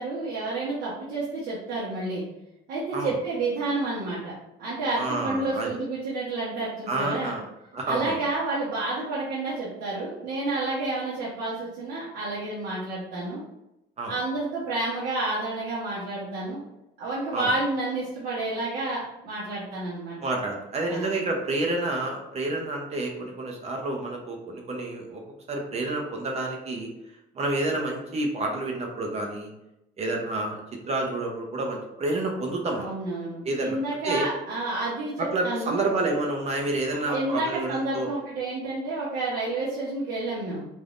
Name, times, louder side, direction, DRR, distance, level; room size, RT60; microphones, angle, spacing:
voice 1, 0.0-2.2 2.7-4.3 4.6-7.3 7.8-13.4 14.1-16.6 17.0-20.2 20.9-21.1 32.7-35.8 37.1-40.7, right 2 dB, 85° right, -9 dB, 1.1 m, -30 dB
voice 2, 5.0-5.7 6.9-7.4 7.7-8.2 14.0-14.1 17.3-17.5 20.2-25.2 25.5-26.9 27.3-29.5 30.0-32.9 33.4-33.8 34.0-34.3 35.2-38.1, right 2 dB, 40° right, 1 dB, 0.7 m, -29 dB
3.5 x 2.6 x 2.4 m, 0.89 s
cardioid pair, 110°, 17 cm